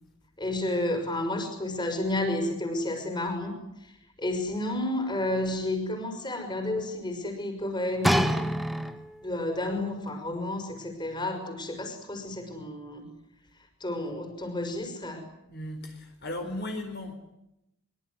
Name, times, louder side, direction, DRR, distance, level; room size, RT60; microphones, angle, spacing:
voice 1, 0.4-8.3 8.7-8.8 9.2-13.1 13.8-15.2, left 1 dB, 20° left, 6 dB, 6.2 m, -31 dB
sound 1, 8.0-9.3 10.1-10.2, equal, ahead, 1.7 m, -26 dB
voice 2, 15.5-17.1, left 1 dB, 45° left, 4 dB, 4.4 m, -36 dB
25.0 x 24.0 x 9.7 m, 0.86 s
head